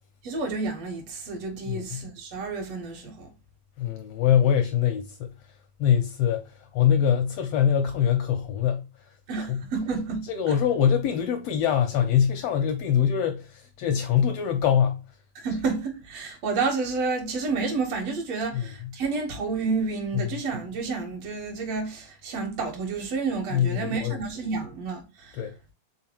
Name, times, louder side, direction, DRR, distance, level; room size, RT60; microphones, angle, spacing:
voice 1, 0.2-3.3 9.3-10.6 15.4-25.4, right 4 dB, 65° right, 2.1 m, -30 dB
voice 2, 1.7-2.0 3.8-5.3 5.8-8.8 9.5-9.6 10.3-15.0 18.5-18.6 23.5-24.2 25.3-25.5, left 8 dB, 80° left, 1.4 m, -23 dB
4.7 x 3.9 x 2.8 m
omnidirectional pair, 3.3 m